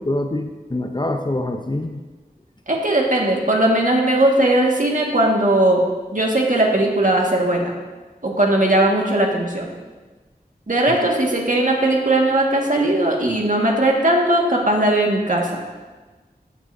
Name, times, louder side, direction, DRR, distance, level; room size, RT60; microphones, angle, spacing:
voice 1, 0.0-2.0, left 1 dB, 30° left, 4 dB, 0.6 m, -25 dB
voice 2, 2.7-5.8 6.1-7.7 8.2-9.7 10.7-15.6, right 1 dB, 55° right, -1 dB, 1.8 m, -18 dB
14.0 x 9.0 x 2.7 m, 1.3 s
wide cardioid pair, 45°, 16 cm